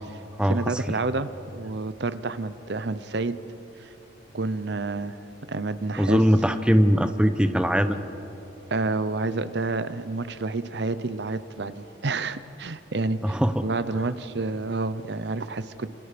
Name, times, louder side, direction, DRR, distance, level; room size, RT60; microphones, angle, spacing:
voice 1, 0.5-3.4 3.8-3.9 4.3-5.2 5.5-6.2 8.7-15.9, right 3 dB, 65° right, 13 dB, 0.8 m, -29 dB
voice 2, 6.0-8.0 13.2-13.5, equal, 5° right, 9 dB, 0.9 m, -20 dB
27.5 x 27.0 x 5.2 m, 2.9 s
head